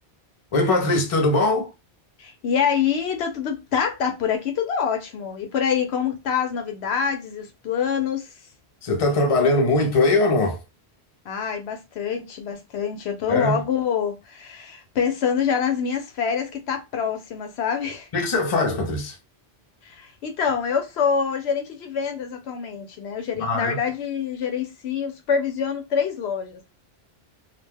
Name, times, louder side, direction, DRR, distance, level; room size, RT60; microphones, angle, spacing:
voice 1, 0.5-1.7 8.8-10.6 13.3-13.6 18.1-19.2 23.4-23.8, left 2 dB, 40° left, 0.6 m, -21 dB
voice 2, 2.2-8.3 11.2-18.1 19.8-26.7, left 7 dB, 80° left, 0.9 m, -26 dB
2.3 x 2.2 x 3.3 m
omnidirectional pair, 1.1 m